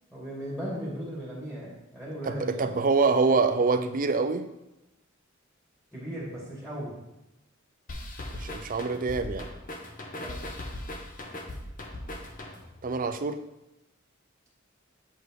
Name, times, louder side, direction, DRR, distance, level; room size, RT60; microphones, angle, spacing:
voice 1, 0.1-2.9 5.9-7.0 10.1-10.4, equal, 5° left, -7 dB, 2.4 m, -37 dB
voice 2, 2.3-4.4 8.4-9.5 12.8-13.4, right 4 dB, 40° right, 9 dB, 0.5 m, -25 dB
sound 1, 7.9-12.8, left 1 dB, 40° left, 1.1 m, -39 dB
8.2 x 5.0 x 4.7 m, 0.94 s
head